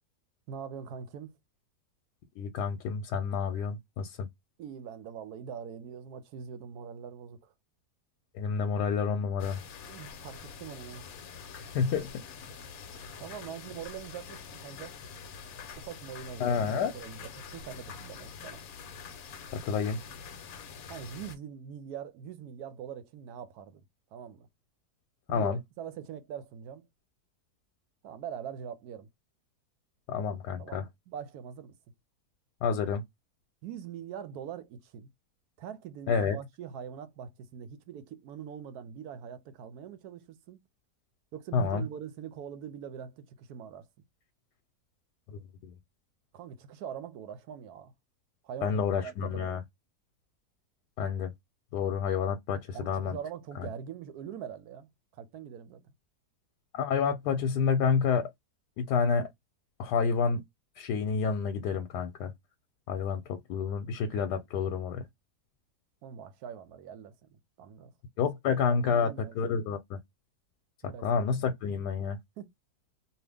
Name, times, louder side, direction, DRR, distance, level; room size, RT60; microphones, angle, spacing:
voice 1, 0.5-1.4 4.6-7.5 9.9-11.1 13.2-15.0 15.8-16.6 16.8-18.6 20.9-23.8 24.1-24.5 25.3-26.9 28.0-29.1 30.6-31.8 33.6-35.1 35.6-40.6 41.3-43.9 46.3-47.9 48.4-49.6 52.7-55.9 66.0-67.9 68.7-69.3 70.8-71.1 72.4-72.5, right 8 dB, 75° right, 1.1 m, -43 dB
voice 2, 2.4-4.3 8.3-9.6 11.5-12.1 12.9-13.1 16.4-16.9 19.5-20.0 25.3-25.6 30.1-30.8 32.6-33.0 36.1-36.4 41.5-41.8 45.3-45.7 48.6-49.6 51.0-51.3 51.7-53.2 53.6-53.7 56.7-58.3 58.8-59.3 59.8-60.4 60.8-62.3 62.9-65.0 68.2-69.1 69.4-70.0 71.0-72.2, left 6 dB, 85° left, 1.2 m, -29 dB
sound 1, 9.4-21.4, left 6 dB, 70° left, 1.0 m, -46 dB
2.8 x 2.5 x 3.3 m
omnidirectional pair, 1.7 m